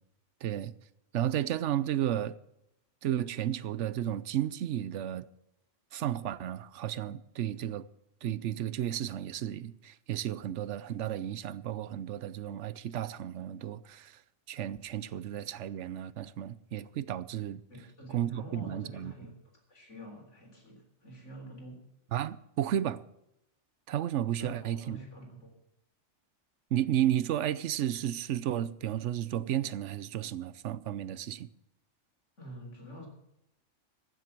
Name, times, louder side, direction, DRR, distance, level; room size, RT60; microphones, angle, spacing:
voice 1, 0.4-0.7 1.1-2.4 3.0-5.3 5.9-7.9 8.2-14.2 14.5-17.6 18.1-19.1 22.1-23.0 23.9-25.0 26.7-31.5, right 11 dB, 80° right, 1.0 m, -33 dB
voice 2, 17.7-19.3 19.7-21.8 24.3-25.5 32.4-33.1, equal, 80° left, 4.0 m, -47 dB
15.5 x 7.6 x 7.4 m
omnidirectional pair, 1.2 m